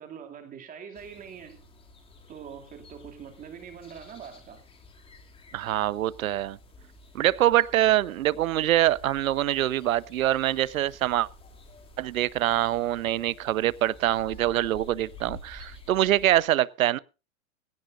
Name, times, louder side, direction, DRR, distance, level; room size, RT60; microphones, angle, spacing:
voice 1, 0.0-1.6 2.3-4.6, right 7 dB, 20° right, 2.6 m, -43 dB
sound 1, 0.9-16.4, left 2 dB, 15° left, 2.5 m, -50 dB
voice 2, 5.5-6.6 7.1-11.3 12.0-17.0, right 13 dB, 80° right, 0.9 m, -24 dB
18.5 x 17.0 x 2.6 m
hypercardioid pair, 145°, 40 cm